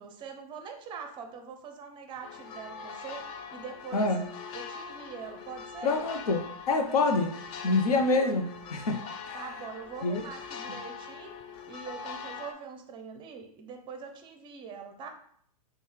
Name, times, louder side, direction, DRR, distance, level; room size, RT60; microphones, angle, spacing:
voice 1, 0.0-3.2 3.5-4.1 4.5-6.1 8.2-8.4 9.3-11.4 11.7-15.1, right 6 dB, 25° right, 5 dB, 0.6 m, -43 dB
sound 1, 2.2-12.5, left 5 dB, 30° left, 0.4 m, -42 dB
voice 2, 3.9-4.2 5.8-7.3 7.6-9.0 9.3-9.4 10.0-10.2, left 3 dB, 70° left, 5 dB, 0.8 m, -26 dB
5.5 x 2.4 x 3.2 m, 0.63 s
hypercardioid pair, 120°, 20 cm